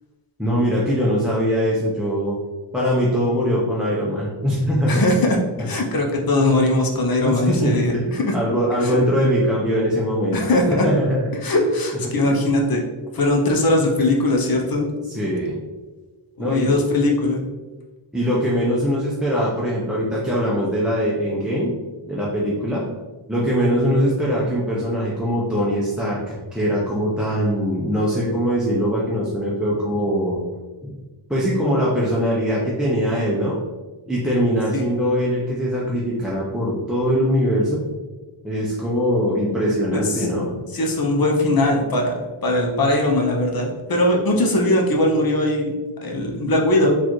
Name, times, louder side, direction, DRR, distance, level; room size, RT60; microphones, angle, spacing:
voice 1, 0.4-2.4 2.7-5.0 7.2-8.1 8.3-10.4 10.7-11.3 12.0-12.1 15.1-15.6 16.4-16.7 18.1-21.7 22.1-22.8 23.3-30.4 30.8-31.0 31.3-33.6 34.1-37.8 38.4-40.5, equal, ahead, -7 dB, 0.5 m, -21 dB
voice 2, 4.9-8.3 8.8-9.0 10.3-10.8 11.4-12.8 13.1-14.9 16.4-17.4 34.7-34.8 40.1-40.3 40.7-42.1 42.4-45.7 46.0-47.0, left 1 dB, 45° left, 1 dB, 0.6 m, -20 dB
4.0 x 2.5 x 3.0 m, 1.2 s
wide cardioid pair, 125°, 50 cm